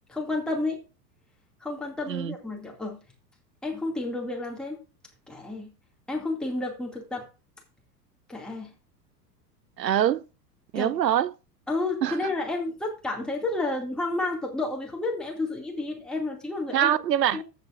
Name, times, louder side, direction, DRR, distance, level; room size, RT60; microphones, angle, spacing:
voice 1, 0.1-0.8 1.6-3.0 3.6-4.8 5.3-5.7 6.1-7.3 8.3-8.7 10.7-11.0 11.7-17.0 17.3-17.4, left 2 dB, ahead, 2.3 m, -31 dB
voice 2, 9.8-10.2 10.7-11.3 12.0-12.2 16.7-17.4, right 11 dB, 80° right, 0.6 m, -24 dB
15.0 x 6.6 x 2.5 m
figure-of-eight pair, 85°, 49 cm